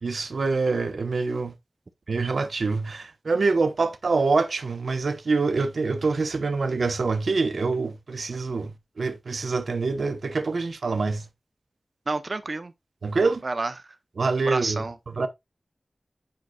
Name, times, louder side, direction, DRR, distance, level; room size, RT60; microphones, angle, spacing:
voice 1, 0.0-1.5 2.1-11.3 13.0-13.4 14.2-14.8 15.2-15.3, right 4 dB, 90° right, 0.7 m, -25 dB
voice 2, 12.1-12.7 13.4-14.0 14.4-15.0, right 3 dB, 55° right, 0.6 m, -29 dB
8.9 x 5.3 x 2.3 m
wide cardioid pair, 85°, 0 cm